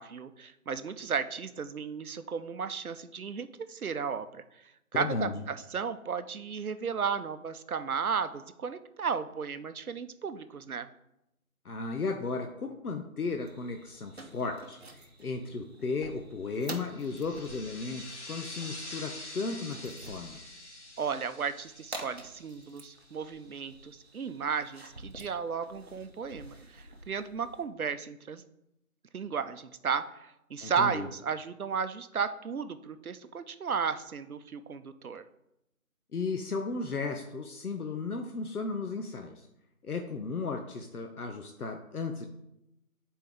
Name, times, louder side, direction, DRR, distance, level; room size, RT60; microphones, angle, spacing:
voice 1, 0.0-4.3 4.5-4.6 4.9-10.9 21.0-28.4 29.1-35.2, right 6 dB, 75° right, 11 dB, 0.6 m, -34 dB
voice 2, 4.9-5.3 11.6-20.4 30.6-31.1 36.1-39.5 39.8-42.3, left 4 dB, 80° left, 5 dB, 0.8 m, -35 dB
sound 1, 13.4-27.6, right 2 dB, 45° right, 0.9 m, -49 dB
sound 2, 16.9-23.2, left 1 dB, 50° left, 1.2 m, -46 dB
7.5 x 4.4 x 3.5 m, 0.84 s
figure-of-eight pair, 170°, 44 cm